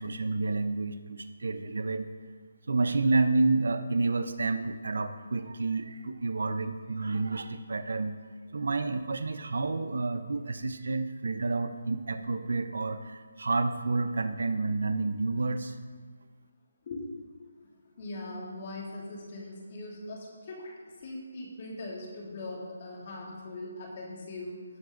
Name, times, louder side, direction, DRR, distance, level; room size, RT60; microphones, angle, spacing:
voice 1, 0.0-2.1 2.7-8.2 8.5-15.8, right 3 dB, 75° right, 10 dB, 0.7 m, -29 dB
voice 2, 16.9-17.5 18.0-24.6, left 2 dB, 40° left, -2 dB, 2.6 m, -40 dB
17.0 x 6.0 x 3.9 m, 1.5 s
hypercardioid pair, 165°, 0 cm